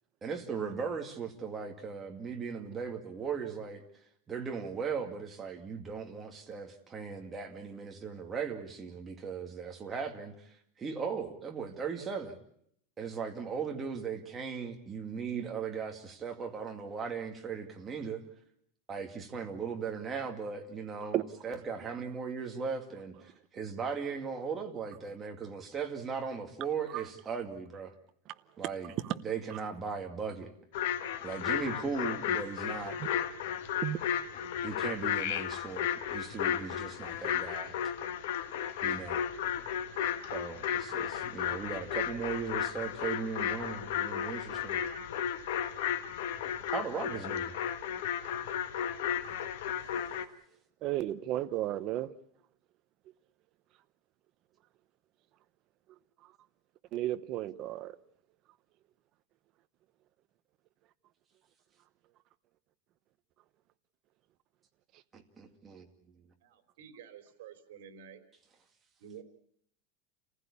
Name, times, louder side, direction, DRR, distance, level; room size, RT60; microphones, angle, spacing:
voice 1, 0.2-3.8 4.3-12.4 13.0-18.2 18.9-27.9 28.6-28.9 29.2-30.5 31.2-33.0 34.6-37.8 38.8-39.2 40.3-44.8 46.7-47.5 65.1-65.9, right 6 dB, 15° right, 2.2 m, -38 dB
sound 1, 30.7-50.3, left 9 dB, 65° left, 1.5 m, -34 dB
voice 2, 50.8-52.1 56.9-58.0, right 14 dB, 35° right, 0.9 m, -33 dB
voice 3, 66.4-68.2 69.0-69.2, right 8 dB, 70° right, 3.6 m, -50 dB
29.0 x 15.5 x 8.6 m
supercardioid pair, 175°, 0 cm